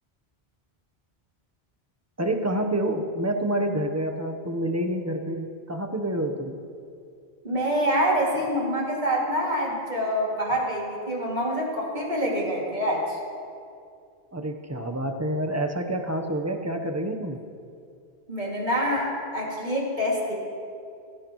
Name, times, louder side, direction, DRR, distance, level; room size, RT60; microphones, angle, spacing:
voice 1, 2.2-6.6 14.3-17.4, right 1 dB, 15° right, 4 dB, 0.8 m, -28 dB
voice 2, 7.4-13.2 18.3-20.3, equal, 45° right, -4 dB, 2.6 m, -26 dB
16.5 x 16.0 x 3.1 m, 2.4 s
omnidirectional pair, 1.1 m